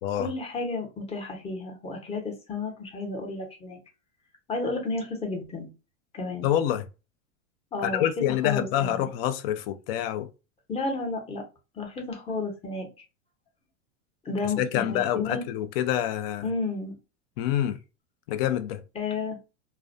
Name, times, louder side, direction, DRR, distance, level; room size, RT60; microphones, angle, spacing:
voice 1, 0.2-3.8 4.5-5.7 6.1-6.5 7.7-8.1 8.4-9.1 10.7-11.4 11.7-12.9 14.2-15.4 16.4-16.9 18.9-19.4, left 3 dB, 15° left, 0.8 m, -32 dB
voice 2, 6.4-6.9 7.8-10.3 14.4-16.5 17.4-17.8 18.3-18.8, left 11 dB, 50° left, 0.5 m, -27 dB
2.4 x 2.1 x 2.5 m
hypercardioid pair, 120°, 40 cm